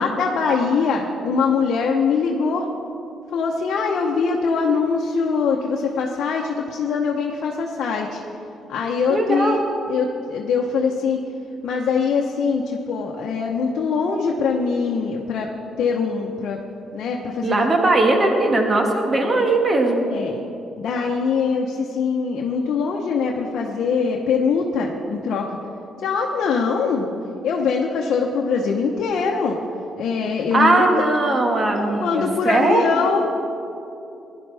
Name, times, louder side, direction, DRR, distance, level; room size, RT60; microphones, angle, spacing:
voice 1, 0.0-2.7 3.3-8.2 8.7-9.6 9.9-11.2 11.6-15.5 15.8-16.6 16.9-17.5 19.4-19.5 20.1-20.4 20.8-25.6 26.0-27.1 27.4-29.6 30.0-31.0 31.7-33.3, left 5 dB, 70° left, 0 dB, 0.9 m, -22 dB
voice 2, 9.1-9.6 17.4-20.1 26.7-26.8 30.5-33.0, right 2 dB, 35° right, 2 dB, 1.7 m, -19 dB
16.5 x 10.5 x 3.4 m, 2.8 s
cardioid pair, 90°, 0 cm